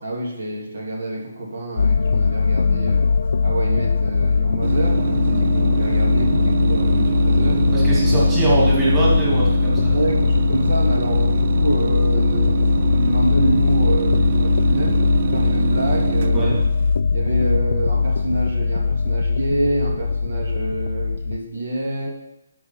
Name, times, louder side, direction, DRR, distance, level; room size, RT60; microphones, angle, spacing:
voice 1, 0.0-3.1 3.4-7.6 9.9-16.5 17.1-22.1, right 1 dB, 70° right, -1 dB, 2.3 m, -27 dB
sound 1, 1.8-21.4, left 4 dB, 65° left, 0.3 m, -19 dB
sound 2, 4.6-17.0, right 8 dB, 45° right, 0.3 m, -25 dB
voice 2, 7.7-9.9 16.3-16.6, right 2 dB, 10° right, -8 dB, 2.3 m, -23 dB
11.5 x 4.8 x 4.3 m, 0.92 s
hypercardioid pair, 160°, 0 cm